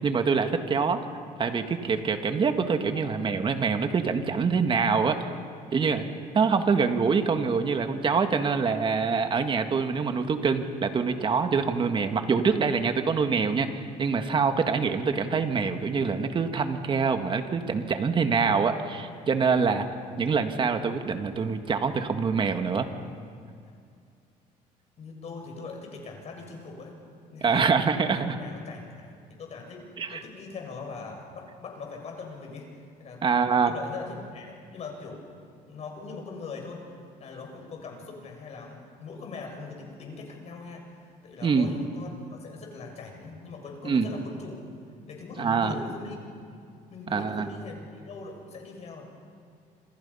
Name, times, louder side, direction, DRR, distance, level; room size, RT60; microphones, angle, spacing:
voice 1, 0.0-1.0 1.4-5.3 5.7-6.0 6.3-19.9 20.2-22.9 27.4-28.4 30.0-30.2 33.2-33.7 41.4-41.7 43.8-44.1 45.4-45.8 47.1-47.5, right 5 dB, 35° right, 7 dB, 1.9 m, -25 dB
voice 2, 25.0-26.9 27.3-27.7 28.1-32.7 33.0-35.2 35.7-36.9 37.2-44.6 45.1-46.2 46.9-49.0, left 4 dB, 50° left, 2 dB, 6.7 m, -41 dB
27.5 x 27.0 x 5.7 m, 2.3 s
cardioid pair, 115°, 15 cm